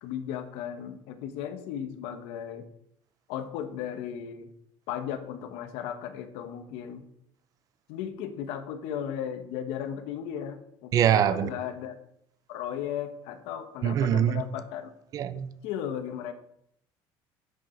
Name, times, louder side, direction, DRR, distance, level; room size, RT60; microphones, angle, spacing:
voice 1, 0.0-2.7 3.3-4.5 4.9-7.0 7.9-11.9 12.5-14.9 15.6-16.3, left 9 dB, 85° left, 1.2 m, -35 dB
voice 2, 10.9-11.5 13.8-14.4 15.1-15.5, right 10 dB, 40° right, 0.6 m, -23 dB
10.5 x 6.6 x 4.5 m
cardioid pair, 160°, 9 cm